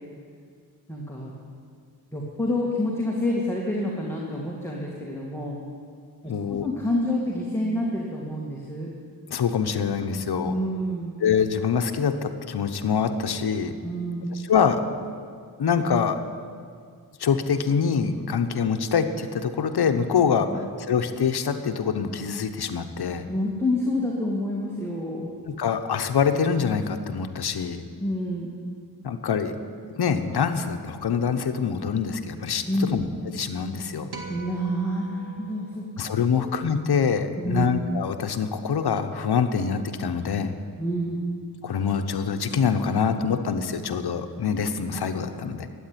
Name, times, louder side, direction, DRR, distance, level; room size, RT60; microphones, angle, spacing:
voice 1, 0.9-1.3 2.1-5.6 6.2-8.9 10.4-11.2 13.8-14.3 23.2-25.3 28.0-28.5 32.7-32.9 34.3-35.9 36.3-36.4 37.4-37.7 40.8-41.2, left 1 dB, 5° left, -3 dB, 2.3 m, -28 dB
voice 2, 6.3-6.7 9.3-10.5 11.2-13.7 14.3-14.8 15.6-16.2 17.2-23.3 25.5-27.9 29.0-29.6 30.0-34.1 36.0-40.5 41.6-45.7, left 6 dB, 80° left, 8 dB, 1.0 m, -25 dB
sound 1, 34.1-36.6, right 2 dB, 80° right, 2.2 m, -42 dB
13.0 x 8.8 x 10.0 m, 2.2 s
cardioid pair, 70°, 38 cm